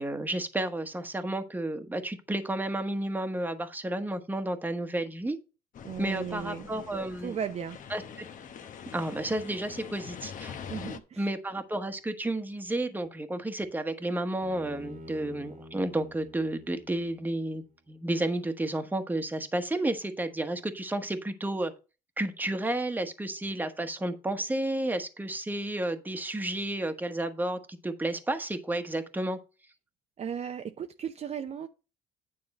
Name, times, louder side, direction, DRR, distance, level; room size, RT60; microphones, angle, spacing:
voice 1, 0.0-5.4 6.0-7.4 7.9-8.0 8.9-10.5 11.2-21.7 22.2-29.4, right 1 dB, 10° right, 1.2 m, -31 dB
sound 1, 5.7-11.0, left 7 dB, 50° left, 1.0 m, -44 dB
voice 2, 5.8-6.7 7.2-7.8 10.7-11.3 30.2-31.7, right 8 dB, 40° right, 0.6 m, -36 dB
Bowed string instrument, 14.4-17.7, left 1 dB, 55° right, 1.5 m, -48 dB
9.7 x 3.7 x 6.4 m
cardioid pair, 110°, 17 cm